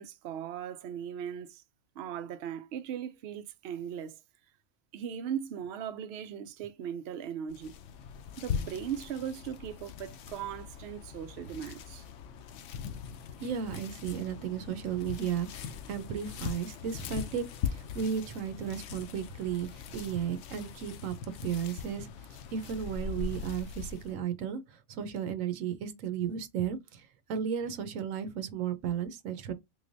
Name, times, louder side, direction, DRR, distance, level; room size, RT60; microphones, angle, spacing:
voice 1, 0.0-1.6 2.0-4.2 4.9-7.7 8.4-12.1, right 9 dB, 65° right, 0.7 m, -38 dB
sound 1, 7.5-24.1, left 7 dB, 70° left, 0.9 m, -41 dB
voice 2, 13.4-17.4 17.7-21.1 21.4-22.1 22.5-29.5, right 8 dB, 85° right, 1.1 m, -34 dB
3.8 x 3.2 x 2.6 m
omnidirectional pair, 1.3 m